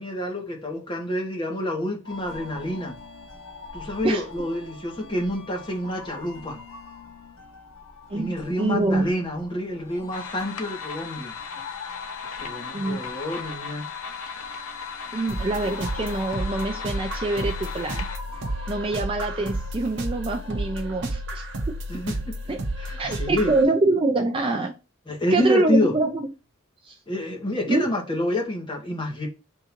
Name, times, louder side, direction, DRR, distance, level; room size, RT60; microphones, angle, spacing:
voice 1, 0.0-3.0 3.7-6.6 8.1-11.3 12.3-13.8 21.9-22.3 22.8-23.5 25.1-25.9 27.1-29.3, left 1 dB, 20° left, 1.1 m, -28 dB
sound 1, 2.0-21.0, left 4 dB, 65° left, 1.2 m, -44 dB
voice 2, 8.1-9.1 12.7-13.0 15.1-18.1 18.7-22.0 22.5-22.6 23.0-24.7 25.3-26.3 26.8-27.0 27.7-27.9, right 2 dB, 25° right, 0.4 m, -25 dB
sound 2, 10.1-18.2, left 6 dB, 80° left, 0.6 m, -36 dB
sound 3, 15.3-23.6, right 1 dB, 55° right, 0.8 m, -32 dB
3.7 x 2.6 x 4.3 m
head